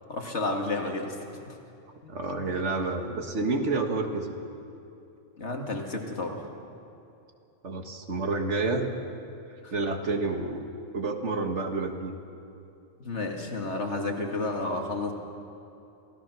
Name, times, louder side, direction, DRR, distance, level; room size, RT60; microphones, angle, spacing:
voice 1, 0.1-1.2 1.5-1.6 2.0-2.1 5.4-6.5 9.6-9.7 13.0-15.1, left 2 dB, 60° left, 2 dB, 2.4 m, -31 dB
voice 2, 2.1-4.3 7.6-8.9 9.7-10.6 10.9-12.1, right 3 dB, 65° right, 4 dB, 1.9 m, -29 dB
28.0 x 17.0 x 6.2 m, 2.7 s
omnidirectional pair, 1.3 m